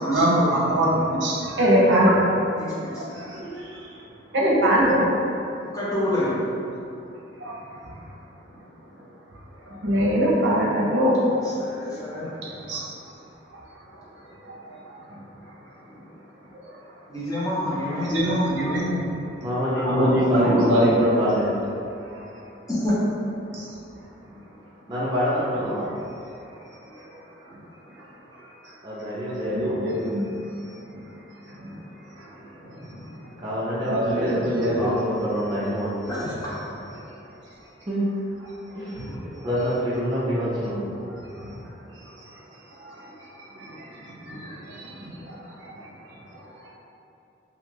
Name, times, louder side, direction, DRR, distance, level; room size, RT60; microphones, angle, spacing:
voice 1, 0.0-2.6 2.9-3.5 4.3-5.1 7.4-7.6 9.7-11.2 11.5-11.6 12.7-12.8 14.4-14.8 18.0-19.1 19.8-21.0 23.5-23.7 25.5-25.7 29.3-30.2 31.6-31.7 33.8-34.9 38.9-39.1 41.4-41.5 43.6-43.7 44.3-45.3 45.6-45.7, equal, 70° right, -5 dB, 0.6 m, -22 dB
voice 2, 2.6-3.0 5.7-6.5 11.4-12.3 17.1-18.4 19.8-20.1 22.7-23.0 36.0-36.4, left 1 dB, 20° left, -9 dB, 0.6 m, -28 dB
voice 3, 19.4-21.6 24.9-25.9 28.8-29.9 33.4-36.3 37.9-38.0 38.7-39.0 39.2-40.8, equal, 25° right, -10 dB, 0.4 m, -26 dB
2.4 x 2.3 x 3.1 m, 2.7 s
head